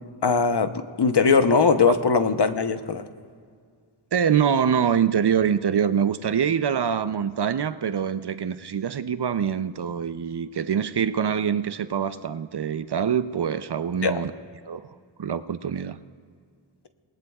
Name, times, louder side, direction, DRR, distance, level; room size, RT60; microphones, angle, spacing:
voice 1, 0.2-0.7 1.0-3.0 14.0-14.2, left 5 dB, 55° left, 9 dB, 0.9 m, -20 dB
voice 2, 4.1-14.3 14.7-14.8 15.2-16.0, right 8 dB, 55° right, 12 dB, 0.6 m, -24 dB
29.0 x 19.0 x 2.4 m, 2.1 s
wide cardioid pair, 50°, 49 cm